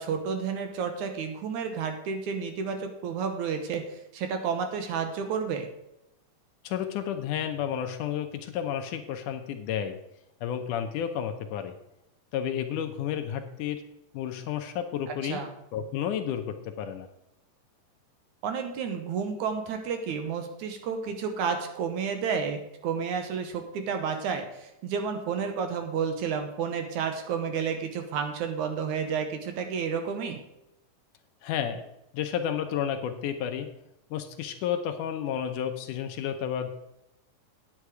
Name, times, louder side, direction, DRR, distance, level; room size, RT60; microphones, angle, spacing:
voice 1, 0.0-5.7 15.1-15.5 18.4-30.4, right 6 dB, 70° right, 6 dB, 2.2 m, -31 dB
voice 2, 6.6-10.0 10.4-11.8 12.3-13.8 14.1-15.4 15.7-17.1 31.4-31.9 32.1-33.7 34.1-36.7, left 9 dB, 75° left, 7 dB, 2.2 m, -31 dB
9.9 x 9.0 x 4.8 m, 0.87 s
omnidirectional pair, 3.9 m